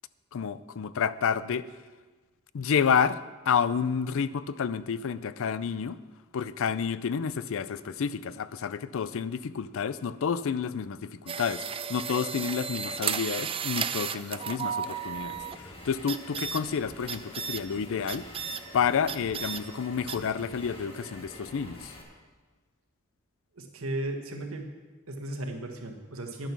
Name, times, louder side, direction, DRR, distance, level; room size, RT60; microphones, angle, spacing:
voice 1, 0.3-1.7 2.5-6.0 6.3-18.3 18.7-21.9, left 6 dB, 65° left, 16 dB, 0.4 m, -30 dB
sound 1, 11.3-15.6 16.1-16.6 17.1-17.6 18.1-18.6 19.1-19.6 20.1-20.2, right 7 dB, 25° right, 0.4 m, -33 dB
sound 2, 14.8-22.0, left 1 dB, 25° left, 1.9 m, -47 dB
voice 2, 23.5-24.7 25.1-26.5, right 1 dB, 75° right, 4 dB, 1.5 m, -35 dB
10.5 x 9.0 x 6.1 m, 1.3 s
head